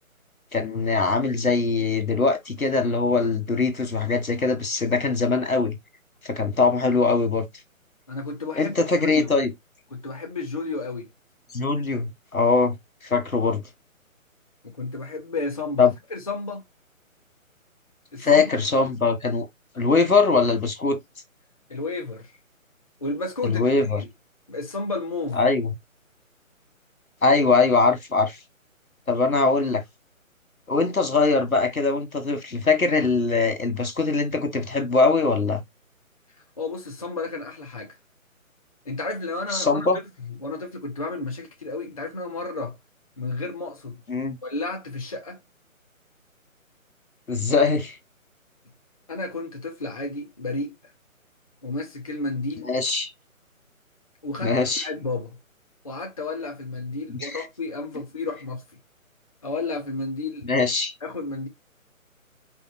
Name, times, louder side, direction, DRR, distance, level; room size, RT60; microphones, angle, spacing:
voice 1, 0.5-5.8 6.2-7.5 8.5-9.5 11.5-12.7 13.0-13.6 15.8-15.9 18.2-19.5 19.7-21.0 23.4-24.0 25.3-25.7 27.2-28.4 29.1-29.8 30.7-35.6 39.5-40.0 44.1-44.4 47.3-48.0 52.7-53.1 54.4-54.9 57.1-57.4 60.5-60.9, left 4 dB, 75° left, 1.6 m, -22 dB
voice 2, 8.1-9.3 9.9-11.1 14.6-16.7 18.1-18.4 18.8-18.9 21.7-22.3 23.0-24.1 24.5-25.5 36.6-38.0 38.9-39.9 40.2-42.8 43.2-44.0 44.4-45.4 49.1-50.8 51.6-52.7 54.2-54.6 54.8-55.4 55.8-58.6 59.4-60.5 61.0-61.5, left 3 dB, 25° left, 0.7 m, -32 dB
5.0 x 2.5 x 4.1 m
figure-of-eight pair, 145°, 42 cm